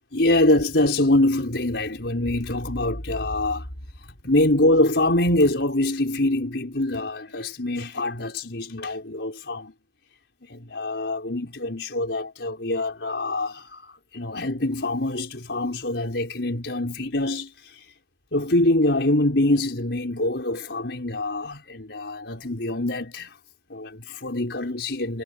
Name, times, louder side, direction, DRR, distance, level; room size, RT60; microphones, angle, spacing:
voice 1, 0.1-3.7 4.0-9.7 10.4-17.9 18.3-23.4 23.7-25.2, left 1 dB, 85° left, 4.8 m, -24 dB
head